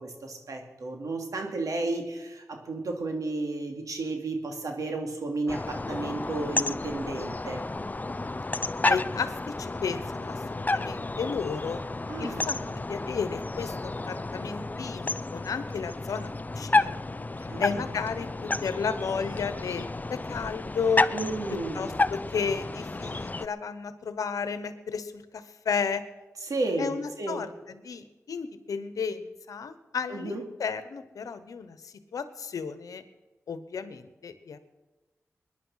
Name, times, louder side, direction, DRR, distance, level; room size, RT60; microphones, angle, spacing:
voice 1, 0.0-7.6 12.1-12.8 17.5-17.8 21.1-21.8 26.5-27.4 30.1-30.4, right 2 dB, 80° right, 3 dB, 2.8 m, -33 dB
sound 1, 5.5-23.5, left 2 dB, 30° left, 0.5 m, -31 dB
voice 2, 8.8-11.8 12.2-12.6 12.9-21.1 21.5-26.0 26.8-33.0 33.5-34.6, left 5 dB, 90° left, 12 dB, 1.0 m, -33 dB
21.5 x 10.5 x 5.7 m, 1.1 s
cardioid pair, 45°, 6 cm